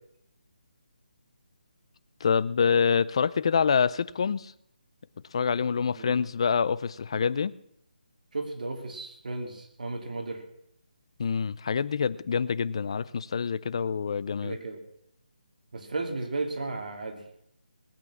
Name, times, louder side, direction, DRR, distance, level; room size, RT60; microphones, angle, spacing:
voice 1, 2.2-4.5 5.3-7.5 11.2-14.6, left 6 dB, 35° left, 17 dB, 0.6 m, -26 dB
voice 2, 8.3-10.4 14.4-14.8 15.7-17.2, right 3 dB, 60° right, 4 dB, 2.9 m, -34 dB
19.5 x 8.6 x 7.2 m, 0.76 s
hypercardioid pair, 170°, 5 cm